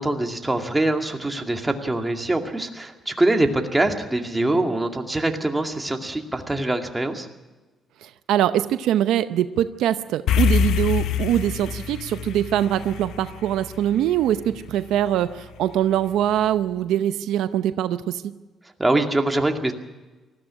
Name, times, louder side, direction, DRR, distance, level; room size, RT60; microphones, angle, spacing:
voice 1, 0.0-7.3 18.8-19.7, right 2 dB, 15° right, 4 dB, 2.3 m, -23 dB
voice 2, 8.0-18.4, right 11 dB, 85° right, 12 dB, 0.7 m, -23 dB
sound 1, 10.3-14.8, left 7 dB, 80° left, 0.7 m, -25 dB
19.5 x 14.5 x 9.8 m, 1.2 s
cardioid pair, 90°, 0 cm